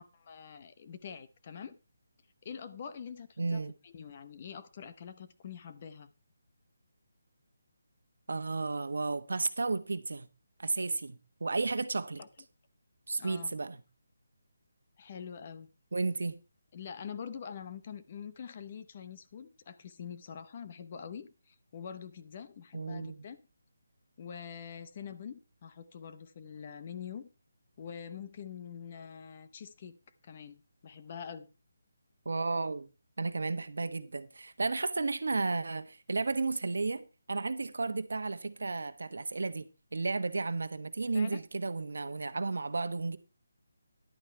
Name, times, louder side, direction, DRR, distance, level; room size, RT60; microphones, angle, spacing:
voice 1, 0.0-1.8 2.4-6.1 12.2-12.3 13.2-13.5 15.0-15.7 16.7-23.4 24.2-27.3 27.8-29.9 30.2-31.5 41.1-41.4, left 7 dB, 25° left, 0.7 m, -45 dB
voice 2, 3.4-3.7 8.3-10.3 10.6-12.2 13.1-13.8 15.9-16.4 22.7-23.2 32.2-32.9 33.2-43.2, right 3 dB, 75° right, 1.2 m, -33 dB
11.0 x 8.8 x 4.5 m
hypercardioid pair, 175°, 0 cm